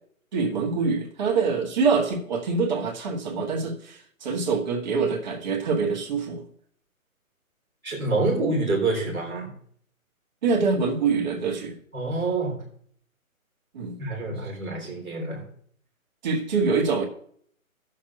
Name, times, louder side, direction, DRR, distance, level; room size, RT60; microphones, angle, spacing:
voice 1, 0.3-6.4 10.4-11.8 13.7-14.0 16.2-17.0, right 4 dB, 30° right, 0 dB, 1.8 m, -25 dB
voice 2, 7.8-9.5 11.9-12.6 14.0-15.4, right 3 dB, ahead, -20 dB, 0.6 m, -27 dB
18.0 x 6.5 x 2.9 m, 0.62 s
hypercardioid pair, 165°, 42 cm